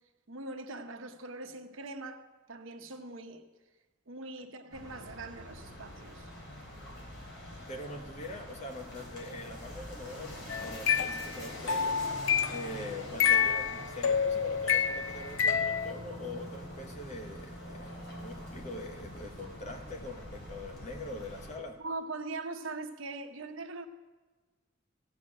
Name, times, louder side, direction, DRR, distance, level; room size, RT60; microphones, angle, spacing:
voice 1, 0.3-3.5 4.1-6.3 21.8-23.9, right 3 dB, 85° right, 1.1 m, -41 dB
sound 1, 4.7-21.6, left 1 dB, 60° left, 4.0 m, -45 dB
voice 2, 7.7-21.8, left 1 dB, 35° left, 1.1 m, -43 dB
sound 2, 10.5-12.7 13.2-15.9, left 7 dB, 90° left, 0.6 m, -28 dB
15.5 x 6.4 x 8.9 m
head